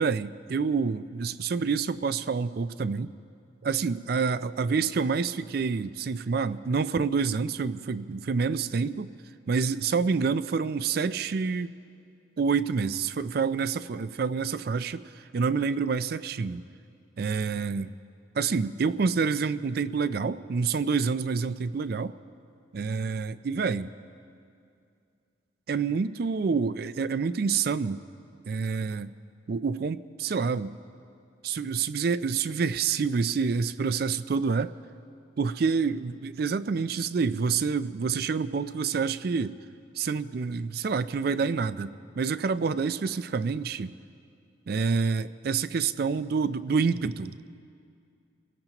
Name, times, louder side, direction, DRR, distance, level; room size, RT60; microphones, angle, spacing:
voice 1, 0.0-3.1 3.6-9.1 9.5-11.7 12.4-16.6 17.2-17.9 18.4-22.1 22.7-23.9 25.7-28.0 28.5-29.1 29.5-30.8 31.4-34.7 35.4-39.6 40.0-43.9 44.7-47.4, right 5 dB, 55° right, 14 dB, 0.4 m, -27 dB
26.5 x 16.5 x 3.0 m, 2.4 s
head